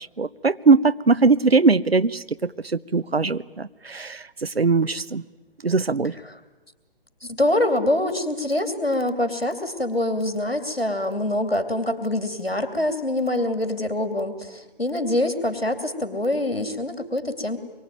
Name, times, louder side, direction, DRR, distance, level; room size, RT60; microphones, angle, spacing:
voice 1, 0.0-2.5 2.9-5.2 5.6-6.1, right 4 dB, 85° right, 17 dB, 0.9 m, -20 dB
voice 2, 7.2-17.6, left 1 dB, 90° left, 8 dB, 3.0 m, -25 dB
25.5 x 23.0 x 9.2 m, 1.2 s
figure-of-eight pair, 130°, 29 cm